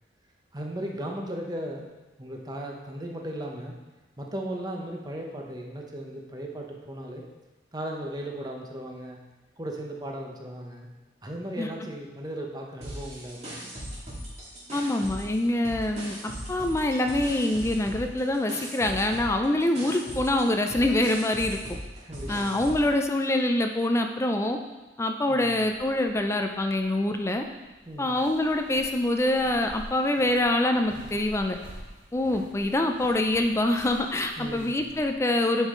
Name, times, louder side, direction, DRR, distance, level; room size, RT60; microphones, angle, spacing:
voice 1, 0.5-1.9 2.2-3.8 4.2-7.2 7.7-9.2 9.6-10.9 11.2-13.7 22.0-22.6 25.3-25.6 27.9-28.2 34.4-34.9, right 1 dB, 20° right, 0 dB, 0.9 m, -36 dB
sound 1, 12.8-15.4 15.6-22.9, equal, 35° right, 2.4 m, -38 dB
voice 2, 14.7-21.8 22.3-24.6 25.0-27.5 28.0-31.6 32.1-35.7, left 1 dB, 15° left, 5 dB, 0.4 m, -25 dB
sound 2, 25.6-35.1, equal, 65° right, 1.6 m, -48 dB
9.5 x 5.5 x 3.8 m, 1.2 s
head